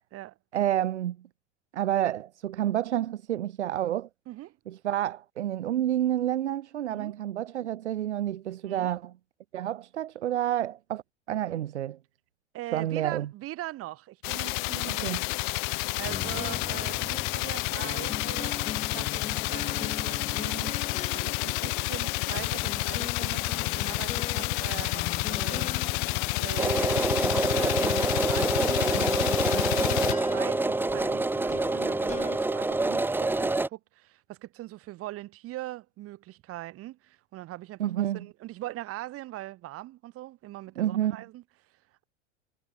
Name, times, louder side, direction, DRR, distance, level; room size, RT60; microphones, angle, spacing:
voice 1, 0.5-1.2 1.7-4.1 4.7-9.1 9.5-11.0 11.3-12.0 12.7-13.3 14.9-15.2 37.8-38.3 40.8-41.2, right 12 dB, 75° right, 1.2 m, -29 dB
voice 2, 4.3-4.6 6.9-7.1 8.6-8.9 12.5-15.2 15.9-18.6 18.9-20.8 21.1-25.7 26.4-41.4, right 16 dB, 40° right, 3.2 m, -41 dB
sound 1, 14.2-30.1, left 31 dB, 45° left, 0.5 m, -29 dB
sound 2, 16.1-32.4, left 7 dB, 20° left, 1.5 m, -41 dB
sound 3, 26.6-33.7, right 2 dB, 5° right, 0.9 m, -27 dB
hypercardioid pair, 90°, 34 cm